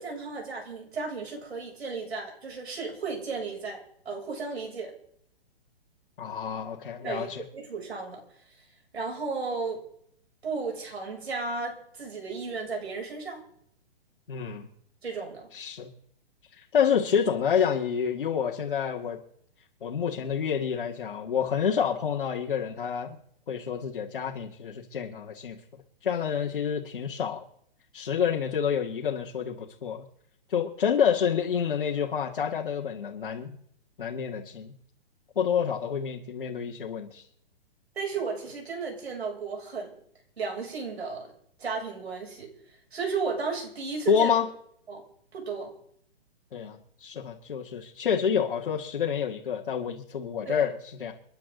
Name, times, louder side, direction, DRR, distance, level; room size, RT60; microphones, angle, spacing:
voice 1, 0.0-4.9 7.0-8.2 8.9-9.8 10.4-13.4 15.0-15.4 38.0-40.0 40.4-41.3 41.6-42.5 42.9-44.3 44.9-45.0 45.3-45.7 50.5-50.6, right 4 dB, 85° right, 0 dB, 7.3 m, -34 dB
voice 2, 6.2-7.4 14.3-14.7 15.5-15.9 16.5-19.2 19.8-23.2 23.5-25.6 26.0-27.4 27.9-30.0 30.5-33.6 34.0-34.7 35.4-37.2 44.1-44.5 46.5-51.1, left 7 dB, 60° left, -2 dB, 2.1 m, -28 dB
30.0 x 10.5 x 3.9 m, 0.68 s
hypercardioid pair, 180°, 31 cm